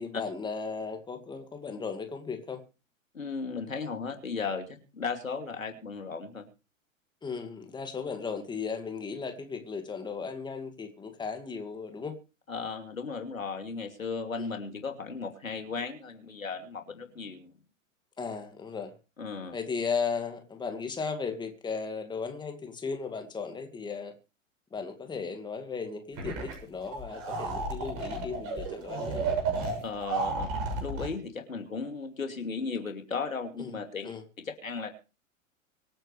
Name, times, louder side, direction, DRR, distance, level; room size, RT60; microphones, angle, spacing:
voice 1, 0.0-2.6 7.2-12.1 14.4-14.5 18.2-18.9 19.5-24.1 24.7-29.4 33.6-33.8 34.0-34.2, left 5 dB, 10° left, 2.1 m, -36 dB
voice 2, 3.1-6.5 12.5-17.5 19.2-19.5 29.8-34.1 34.4-34.9, left 4 dB, 75° left, 2.8 m, -36 dB
sound 1, 26.2-26.6 26.8-31.1, right 3 dB, 35° right, 6.6 m, -32 dB
24.5 x 8.9 x 3.3 m
figure-of-eight pair, 100°, 40 cm